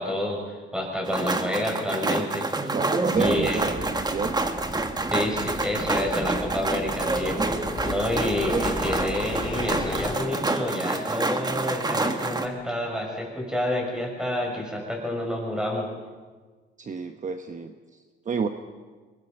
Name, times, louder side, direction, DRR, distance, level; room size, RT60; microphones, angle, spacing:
voice 1, 0.0-2.7 3.2-3.6 5.1-15.9, left 1 dB, 5° right, 1 dB, 6.5 m, -29 dB
sound 1, 1.1-12.5, right 2 dB, 20° right, 1.6 m, -28 dB
voice 2, 2.7-4.3 16.8-18.5, right 5 dB, 40° right, 7 dB, 1.1 m, -30 dB
sound 2, 3.1-10.2, left 2 dB, 20° left, 1.9 m, -36 dB
24.0 x 20.0 x 5.4 m, 1.4 s
cardioid pair, 90°, 20 cm